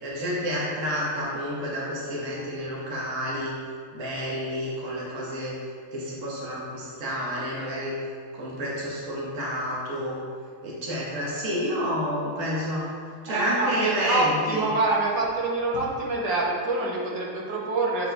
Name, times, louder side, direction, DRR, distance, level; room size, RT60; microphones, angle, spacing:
voice 1, 0.0-3.5 3.9-5.5 5.9-7.9 8.3-10.2 10.6-12.8 13.2-14.6, equal, 55° right, -6 dB, 1.5 m, -29 dB
voice 2, 13.3-18.1, right 2 dB, 80° right, -5 dB, 1.8 m, -26 dB
8.0 x 4.4 x 3.4 m, 2.1 s
omnidirectional pair, 1.7 m